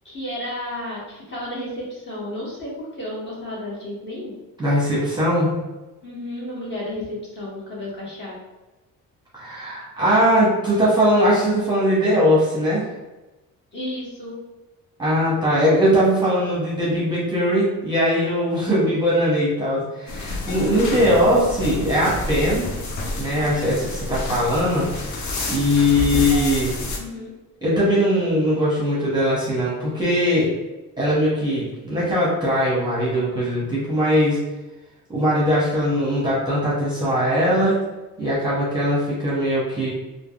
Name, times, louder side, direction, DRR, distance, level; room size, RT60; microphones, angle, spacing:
voice 1, 0.0-4.3 6.0-7.0 7.3-8.4 13.7-14.4 27.0-27.3, left 1 dB, 35° left, -7 dB, 1.1 m, -32 dB
voice 2, 4.6-5.5 9.4-12.9 15.0-22.6 23.2-24.9 25.5-26.7 27.6-30.5 31.0-34.4 35.1-37.8 38.2-39.9, equal, 15° right, -8 dB, 0.7 m, -20 dB
sound 1, 20.1-27.0, left 2 dB, 60° left, 0.5 m, -29 dB
3.3 x 2.0 x 2.3 m, 1.1 s
cardioid pair, 145°, 34 cm